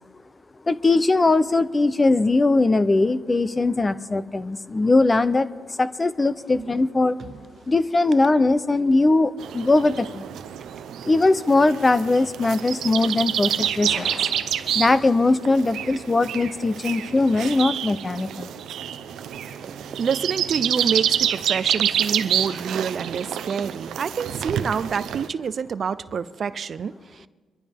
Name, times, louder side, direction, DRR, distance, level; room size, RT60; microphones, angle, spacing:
voice 1, 0.7-7.2 7.7-10.2 11.0-14.1 14.7-18.5, left 2 dB, 25° left, 14 dB, 0.7 m, -20 dB
sound 1, 9.4-25.3, right 9 dB, 75° right, 0.8 m, -28 dB
Gunshot gunfire, 13.8-15.0, left 2 dB, 60° left, 5.0 m, -40 dB
voice 2, 19.6-27.3, right 6 dB, 50° right, 16 dB, 0.5 m, -27 dB
24.5 x 12.0 x 3.6 m, 1.5 s
cardioid pair, 90°, 0 cm